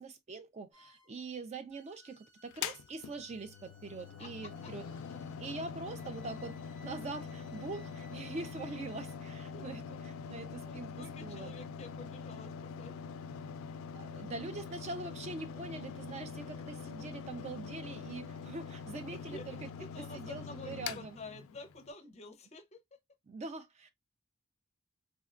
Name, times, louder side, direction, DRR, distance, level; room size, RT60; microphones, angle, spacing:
voice 1, 0.0-4.8 5.4-9.8 10.3-11.5 13.9-19.7 20.0-21.2 23.3-23.9, right 3 dB, 35° right, 0.3 m, -43 dB
sound 1, 0.7-1.2 1.7-9.2, equal, 80° right, 1.6 m, -63 dB
Mechanical fan, 2.5-21.9, left 6 dB, 85° left, 0.3 m, -44 dB
voice 2, 4.2-4.7 9.5-9.7 10.2-10.3 10.6-13.0 19.1-23.0, left 2 dB, 30° left, 0.5 m, -50 dB
3.6 x 2.2 x 2.3 m
head